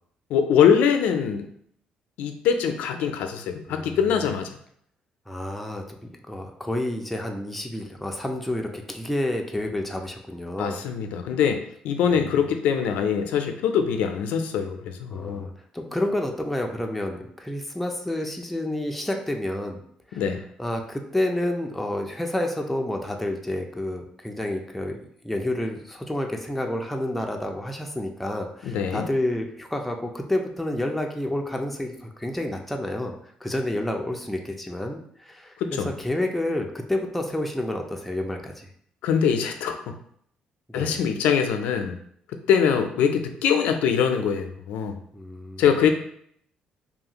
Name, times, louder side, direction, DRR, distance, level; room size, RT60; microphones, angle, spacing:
voice 1, 0.3-1.5 2.2-4.5 10.6-15.5 20.2-20.4 28.6-29.1 35.6-35.9 39.0-39.9 40.7-42.0 42.5-45.0 45.6-45.9, left 7 dB, 90° left, 6 dB, 0.3 m, -23 dB
voice 2, 3.7-4.3 5.3-5.8 6.1-10.8 12.1-12.4 15.1-19.8 20.1-20.2 20.6-25.0 25.2-33.1 33.4-38.7 40.7-41.0 45.1-45.6, left 1 dB, 5° left, 2 dB, 0.3 m, -29 dB
2.6 x 2.4 x 2.8 m, 0.65 s
cardioid pair, 145°, 2 cm